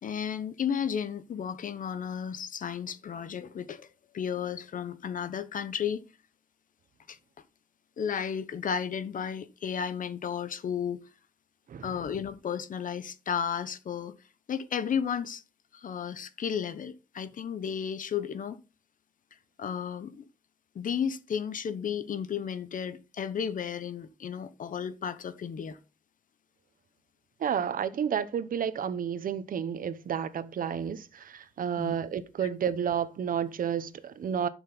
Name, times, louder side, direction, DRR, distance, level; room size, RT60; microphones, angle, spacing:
voice 1, 0.0-3.9 4.1-6.0 7.1-7.2 8.0-11.0 11.8-14.1 14.5-15.4 15.7-18.6 19.6-20.2 20.7-25.8 31.8-32.0, left 7 dB, 75° left, 1.0 m, -33 dB
voice 2, 27.4-34.5, right 8 dB, 80° right, 0.9 m, -31 dB
11.5 x 6.4 x 4.0 m
wide cardioid pair, 145°, 14 cm